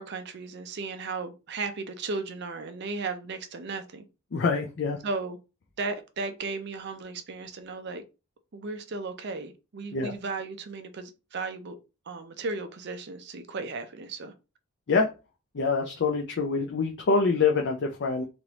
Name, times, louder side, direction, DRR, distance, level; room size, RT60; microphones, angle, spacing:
voice 1, 0.0-4.1 5.0-5.4 5.8-8.0 8.5-11.8 12.1-14.3, right 3 dB, 50° right, 0.5 m, -35 dB
voice 2, 4.3-5.0 9.9-10.1 14.9-15.1 15.5-18.3, left 4 dB, 50° left, 0.4 m, -25 dB
3.2 x 2.5 x 2.9 m
head